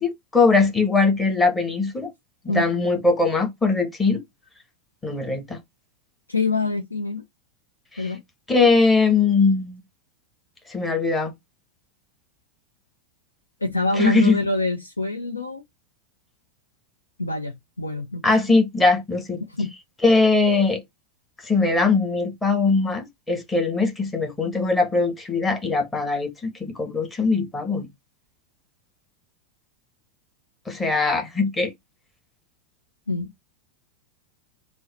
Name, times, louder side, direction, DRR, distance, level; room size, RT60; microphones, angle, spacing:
voice 1, 0.0-2.1 2.4-4.2 5.0-5.6 7.9-8.1 8.5-9.8 10.7-11.3 14.0-14.4 18.2-19.4 20.0-20.8 21.4-27.9 30.7-31.7, left 3 dB, 10° left, 1.2 m, -21 dB
voice 2, 6.3-7.2 8.0-8.2 13.6-15.6 17.2-18.2 19.5-19.7 33.1-33.3, left 2 dB, 80° left, 0.5 m, -25 dB
3.9 x 2.0 x 4.0 m
figure-of-eight pair, 90°, 0 cm